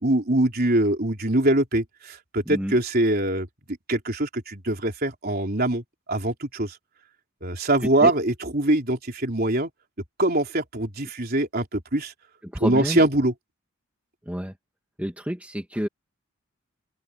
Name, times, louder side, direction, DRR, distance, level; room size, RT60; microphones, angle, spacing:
voice 1, 0.0-3.5 3.9-6.8 7.4-9.7 10.2-12.1 12.6-13.3, right 1 dB, 45° right, 3.9 m, -23 dB
voice 2, 12.4-13.0 14.2-14.5 15.0-15.9, equal, 5° right, 1.8 m, -29 dB
open air
head